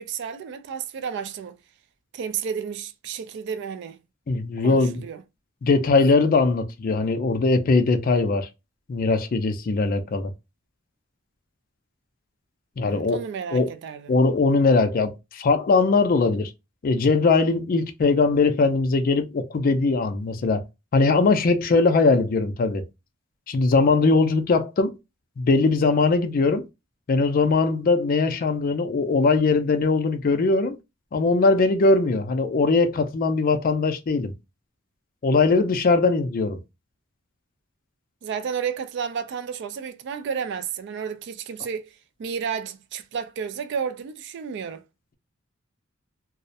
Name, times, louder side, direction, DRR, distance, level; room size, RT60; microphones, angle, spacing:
voice 1, 0.0-1.6 2.1-4.0 4.6-5.2 12.8-14.1 38.2-41.9 42.2-44.8, right 7 dB, 60° right, 0.3 m, -32 dB
voice 2, 4.3-5.0 5.6-8.5 8.9-10.3 12.8-13.2 13.5-13.7 14.1-16.5 16.8-20.6 20.9-22.8 23.5-25.0 25.4-26.7 27.1-30.8 31.1-34.3 35.2-36.6, left 3 dB, 45° left, 0.4 m, -20 dB
2.3 x 2.0 x 2.6 m
head